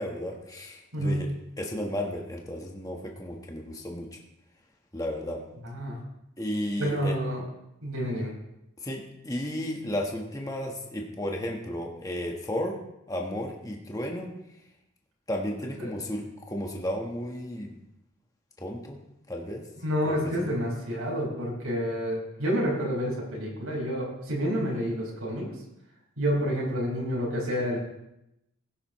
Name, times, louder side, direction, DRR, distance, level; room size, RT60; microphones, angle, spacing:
voice 1, 0.0-1.3 1.6-4.2 4.9-5.4 6.4-7.2 8.8-12.8 13.1-14.3 15.3-17.7 18.6-19.0 19.3-19.6 20.0-20.6, left 1 dB, 15° left, 1 dB, 1.2 m, -33 dB
voice 2, 0.9-1.3 5.6-6.0 6.8-7.4 7.8-8.3 15.8-15.9 19.8-25.5 26.2-27.8, equal, 80° right, -4 dB, 5.2 m, -29 dB
17.0 x 10.0 x 3.1 m, 0.86 s
head